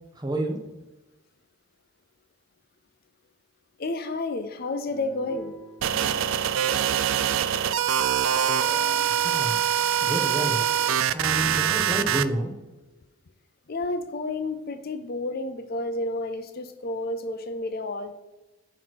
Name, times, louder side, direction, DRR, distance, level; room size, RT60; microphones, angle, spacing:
voice 1, 0.2-0.6 9.1-9.6 10.0-10.6 11.1-12.5, right 1 dB, 20° right, 3 dB, 0.8 m, -29 dB
voice 2, 3.8-5.5 13.7-18.1, left 2 dB, 45° left, 9 dB, 0.5 m, -31 dB
sound 1, 4.8-12.2, equal, 10° left, 1.4 m, -47 dB
sound 2, 5.8-12.3, right 9 dB, 65° right, 0.3 m, -24 dB
9.2 x 3.1 x 6.1 m, 1.0 s
head